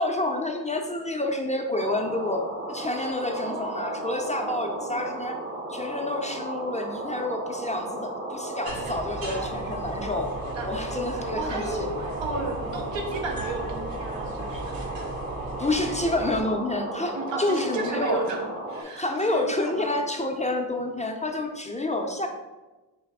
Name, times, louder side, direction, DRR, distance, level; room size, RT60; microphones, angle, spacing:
voice 1, 0.0-2.4 2.7-5.4 5.7-10.3 10.7-11.9 15.6-18.2 18.8-22.3, left 2 dB, 15° left, 2 dB, 0.5 m, -28 dB
sound 1, 1.7-18.8, right 1 dB, 25° right, 0.7 m, -35 dB
voice 2, 3.3-5.0 9.3-9.5 10.5-10.7 11.3-11.9 12.2-14.8 17.1-20.0, right 3 dB, 80° right, 3 dB, 0.8 m, -34 dB
sound 2, 8.6-16.4, right 2 dB, 50° right, 0.9 m, -37 dB
3.9 x 3.3 x 3.5 m, 1.2 s
cardioid pair, 55°, 44 cm